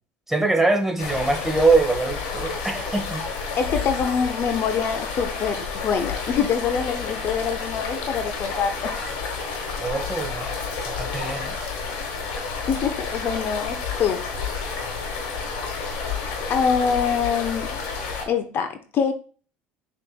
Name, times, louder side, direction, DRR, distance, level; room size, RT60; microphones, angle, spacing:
voice 1, 0.3-3.2 9.8-10.5 10.9-11.5, right 3 dB, 5° right, 3 dB, 1.1 m, -23 dB
sound 1, 1.0-18.3, left 5 dB, 80° left, 1.2 m, -30 dB
voice 2, 3.6-9.0 12.7-14.3 14.6-14.7 16.5-17.8 18.3-19.1, left 6 dB, 50° left, 7 dB, 0.5 m, -25 dB
6.5 x 2.9 x 2.3 m, 0.39 s
supercardioid pair, 80°, 5 cm